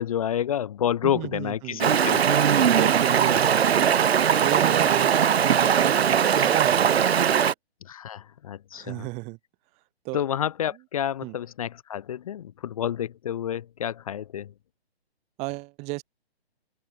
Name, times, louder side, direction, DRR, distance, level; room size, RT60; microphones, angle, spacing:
voice 1, 0.0-2.5 7.9-9.1 10.1-14.5, left 10 dB, 35° left, 0.6 m, -29 dB
voice 2, 1.0-1.8 2.7-4.0 4.4-7.5 8.7-9.4 10.0-10.2 11.2-11.4 15.4-16.0, right 26 dB, 20° right, 2.4 m, -33 dB
Stream, 1.8-7.5, right 8 dB, 75° right, 0.9 m, -20 dB
open air
hypercardioid pair, 155°, 32 cm